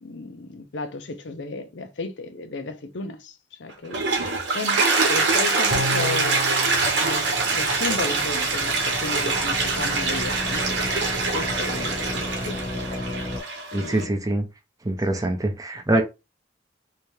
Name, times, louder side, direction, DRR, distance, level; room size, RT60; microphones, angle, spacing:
voice 1, 0.0-4.0 4.5-6.7 7.0-12.6 13.7-14.1 15.1-15.3 15.9-16.0, left 3 dB, 85° left, 0.6 m, -34 dB
Toilet flush, 3.7-14.0, right 3 dB, 80° right, 1.0 m, -24 dB
sound 1, 5.7-9.0 9.4-9.5, equal, 45° right, 0.9 m, -33 dB
sound 2, 6.8-13.4, left 1 dB, 50° left, 0.9 m, -34 dB
voice 2, 13.7-14.4 14.9-16.0, right 2 dB, 20° right, 0.6 m, -24 dB
3.3 x 2.9 x 3.2 m
head